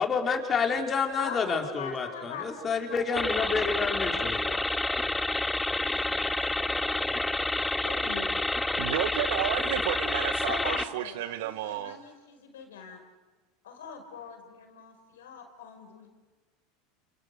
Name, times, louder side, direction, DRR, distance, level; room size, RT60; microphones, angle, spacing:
voice 1, 0.0-4.6, left 5 dB, 30° left, 3 dB, 4.2 m, -29 dB
voice 2, 1.2-5.1 5.7-8.3 10.4-13.0 13.6-16.1, left 6 dB, 75° left, 5 dB, 5.1 m, -43 dB
sound 1, 3.2-10.8, left 2 dB, 10° left, 1.0 m, -29 dB
voice 3, 8.8-12.0, right 14 dB, 65° right, 13 dB, 1.4 m, -31 dB
30.0 x 29.0 x 6.7 m, 1.3 s
hypercardioid pair, 80°, 0 cm